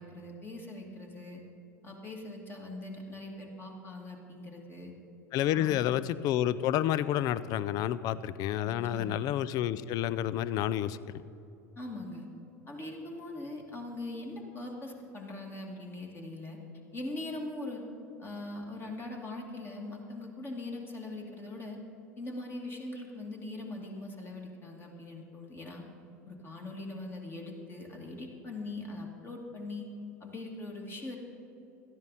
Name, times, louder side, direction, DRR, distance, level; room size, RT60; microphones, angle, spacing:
voice 1, 0.0-1.4 1.8-4.9 5.5-5.9 8.6-9.2 11.8-12.3 12.7-16.6 16.9-17.8 18.2-21.8 22.2-25.9 26.2-29.9 30.2-31.2, left 2 dB, 25° left, 1 dB, 2.4 m, -41 dB
voice 2, 5.3-11.0, left 11 dB, 45° left, 17 dB, 0.5 m, -29 dB
17.5 x 12.5 x 4.1 m, 2.8 s
figure-of-eight pair, 80°, 9 cm